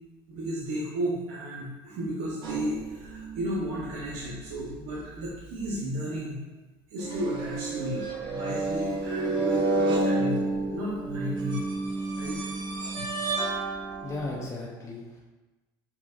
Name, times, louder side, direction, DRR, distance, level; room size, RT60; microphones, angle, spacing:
voice 1, 0.3-6.4 6.9-11.7 12.2-12.4, equal, 75° right, -5 dB, 1.0 m, -33 dB
sound 1, 2.4-3.8 4.2-4.5 5.6-5.7 7.0-14.5, right 2 dB, 40° right, 0.9 m, -30 dB
voice 2, 14.0-15.2, left 2 dB, 25° left, -4 dB, 0.7 m, -36 dB
7.0 x 2.8 x 2.4 m, 1.1 s
supercardioid pair, 115°, 11 cm